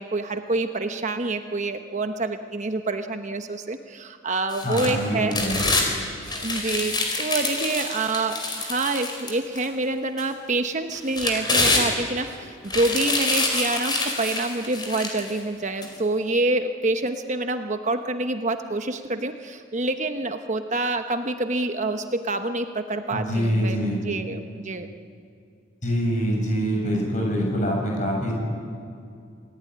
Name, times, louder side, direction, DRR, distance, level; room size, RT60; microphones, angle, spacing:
voice 1, 0.0-5.4 6.3-23.8 24.0-24.9, right 2 dB, 35° right, 7 dB, 1.0 m, -27 dB
sound 1, 4.5-5.9 6.3-9.7 10.2-10.3 10.9-12.3 12.6-15.3 15.8-15.9, left 2 dB, 20° left, 4.5 m, -26 dB
voice 2, 4.6-5.6 23.1-24.0 25.8-28.3, equal, 40° left, -1 dB, 7.3 m, -25 dB
27.5 x 18.5 x 9.7 m, 2.4 s
head